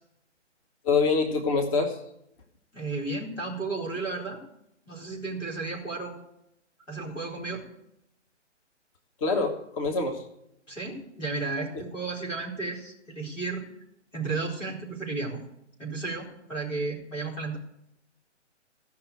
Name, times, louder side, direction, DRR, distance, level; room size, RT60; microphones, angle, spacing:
voice 1, 0.8-2.0 9.2-10.3 11.7-11.8, left 4 dB, 30° left, 4 dB, 1.1 m, -25 dB
voice 2, 2.7-4.4 4.9-6.2 6.9-7.6 10.7-13.6 14.1-15.4 15.8-17.6, right 3 dB, 90° left, -1 dB, 4.2 m, -33 dB
15.0 x 5.9 x 8.0 m, 0.81 s
figure-of-eight pair, 130°, 36 cm